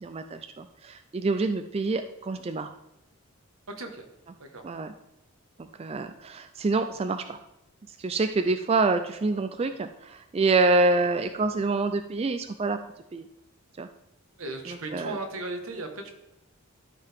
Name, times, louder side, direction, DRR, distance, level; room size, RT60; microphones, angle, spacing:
voice 1, 0.0-2.7 4.6-4.9 5.6-7.4 8.0-12.8 13.1-13.2 13.8-13.9 14.7-15.2, right 3 dB, 30° right, 8 dB, 0.3 m, -26 dB
voice 2, 3.8-4.1 4.4-4.6 14.4-16.1, right 2 dB, 75° right, 4 dB, 1.3 m, -36 dB
12.5 x 4.7 x 3.5 m, 0.89 s
head